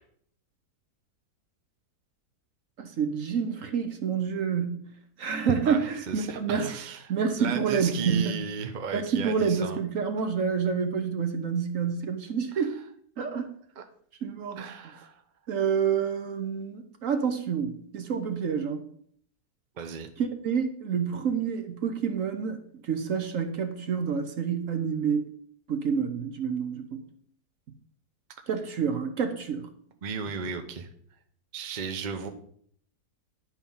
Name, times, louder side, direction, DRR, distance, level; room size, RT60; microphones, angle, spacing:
voice 1, 2.8-4.8 5.2-6.7 7.1-8.4 8.9-12.8 13.2-13.5 14.2-14.6 15.5-18.8 20.2-25.2 25.7-27.0 28.5-29.7, right 6 dB, 60° right, 1.1 m, -28 dB
voice 2, 5.6-7.0 7.4-9.8 12.5-12.7 13.8-13.9 14.6-15.2 19.8-20.1 30.0-30.9 31.5-32.3, right 5 dB, 40° right, 0.7 m, -35 dB
10.5 x 4.6 x 5.5 m
omnidirectional pair, 1.7 m